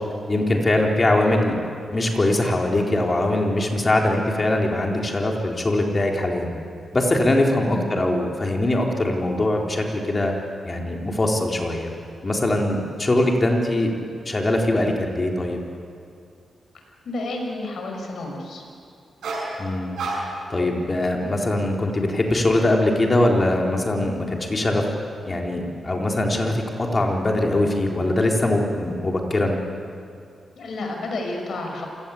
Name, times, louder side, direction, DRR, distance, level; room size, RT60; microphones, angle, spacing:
voice 1, 0.3-1.6 1.9-6.5 6.9-10.3 10.7-11.9 12.2-13.9 14.3-15.6 19.6-20.0 20.5-24.8 25.3-29.6, left 1 dB, 30° left, 0 dB, 3.9 m, -22 dB
voice 2, 17.0-18.6 30.6-31.9, left 2 dB, 70° left, 2 dB, 5.7 m, -30 dB
sound 1, 19.2-19.6 20.0-20.5 21.0-21.4, right 2 dB, 90° right, 7.3 m, -30 dB
27.5 x 18.0 x 8.5 m, 2.4 s
cardioid pair, 90°, 0 cm